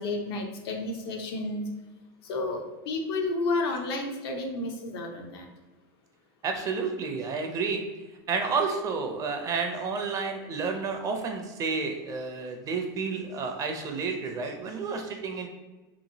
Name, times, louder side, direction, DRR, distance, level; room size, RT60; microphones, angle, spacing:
voice 1, 0.0-1.6 2.2-5.5, left 2 dB, 85° left, 3 dB, 0.6 m, -31 dB
voice 2, 6.4-7.8 8.3-15.5, right 4 dB, 30° right, 4 dB, 0.4 m, -30 dB
2.9 x 2.5 x 2.7 m, 1.2 s
supercardioid pair, 125°, 13 cm